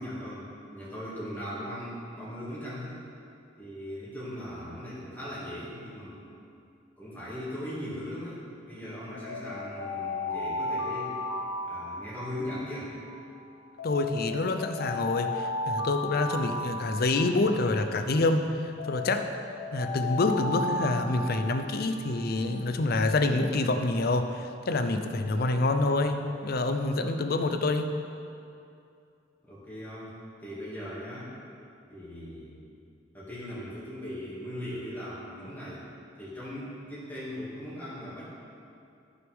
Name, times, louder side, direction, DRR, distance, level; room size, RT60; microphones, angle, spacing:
voice 1, 0.0-2.9 3.6-6.2 7.0-11.1 11.7-13.0 29.5-30.1 30.4-31.4 31.9-32.6 33.1-35.8 36.2-38.2, equal, 10° left, -10 dB, 2.3 m, -39 dB
Alarm, 9.1-13.2 13.8-18.2 18.8-22.6, left 2 dB, 85° left, 1.5 m, -35 dB
voice 2, 13.8-19.3 19.7-27.9, left 2 dB, 55° left, 7 dB, 0.6 m, -27 dB
14.0 x 6.1 x 3.6 m, 2.5 s
head